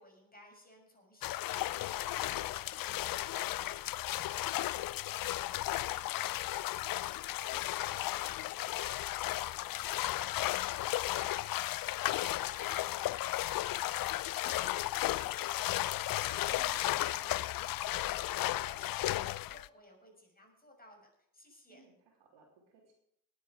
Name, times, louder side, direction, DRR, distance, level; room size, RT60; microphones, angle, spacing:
voice 1, 0.0-21.9, left 1 dB, 20° left, 1 dB, 6.2 m, -61 dB
sound 1, 1.2-19.7, left 15 dB, 55° left, 0.5 m, -34 dB
voice 2, 16.4-17.1 21.7-22.9, right 4 dB, 75° right, 0 dB, 3.3 m, -63 dB
18.5 x 8.2 x 5.2 m, 0.73 s
hypercardioid pair, 40°, 43 cm